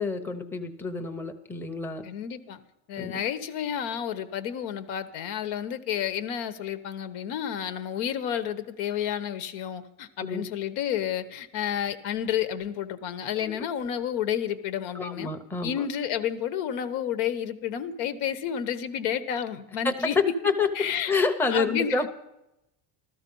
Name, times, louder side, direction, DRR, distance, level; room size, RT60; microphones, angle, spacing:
voice 1, 0.0-2.1 3.0-3.2 10.2-10.4 13.4-13.6 14.9-15.9 19.8-20.7 21.1-22.1, left 4 dB, 5° left, 4 dB, 0.7 m, -28 dB
voice 2, 2.0-2.6 2.9-15.3 15.6-20.2 20.7-21.1 21.5-22.1, left 9 dB, 80° left, 11 dB, 1.3 m, -30 dB
14.0 x 13.5 x 5.5 m, 0.89 s
cardioid pair, 155°, 42 cm